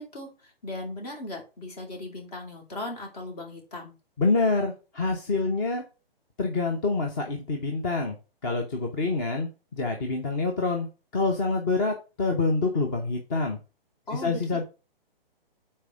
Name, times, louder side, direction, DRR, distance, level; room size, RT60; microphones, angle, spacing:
voice 1, 0.0-3.9 14.1-14.6, left 1 dB, 40° left, 2 dB, 2.7 m, -38 dB
voice 2, 4.2-5.8 6.4-8.2 8.4-10.9 11.1-13.6 14.1-14.6, left 3 dB, 20° left, 2 dB, 0.7 m, -26 dB
5.1 x 4.3 x 6.0 m, 0.30 s
hypercardioid pair, 155°, 30 cm